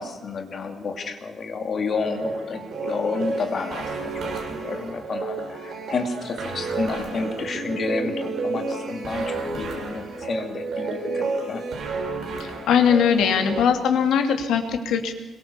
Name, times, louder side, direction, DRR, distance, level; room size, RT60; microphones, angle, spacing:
voice 1, 0.0-11.6, left 4 dB, 35° left, 5 dB, 2.7 m, -30 dB
sound 1, 2.0-13.6, right 3 dB, 50° right, 6.7 m, -31 dB
voice 2, 12.7-15.1, left 7 dB, 85° left, 5 dB, 3.0 m, -20 dB
26.5 x 23.0 x 7.1 m, 1.2 s
cardioid pair, 180°, 0 cm